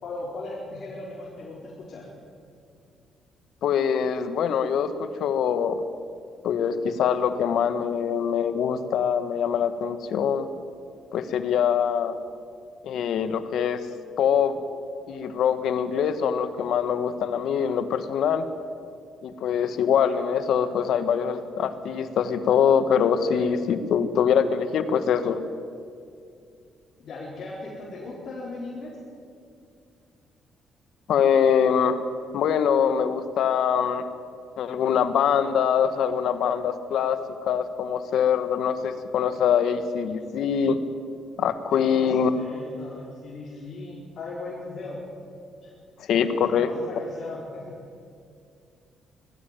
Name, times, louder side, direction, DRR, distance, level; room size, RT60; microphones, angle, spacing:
voice 1, 0.0-2.1 27.0-29.0 41.7-45.0 45.6-45.7 46.1-47.8, left 2 dB, 60° left, -5 dB, 4.5 m, -38 dB
voice 2, 3.6-5.8 6.4-10.5 11.1-12.1 12.8-13.9 14.2-14.6 15.1-18.5 19.2-25.4 31.1-32.0 32.3-34.1 34.6-37.2 37.5-40.8 41.4-42.3 46.1-46.7, left 7 dB, 75° left, 11 dB, 1.4 m, -23 dB
20.5 x 15.0 x 9.2 m, 2.4 s
cardioid pair, 90°, 0 cm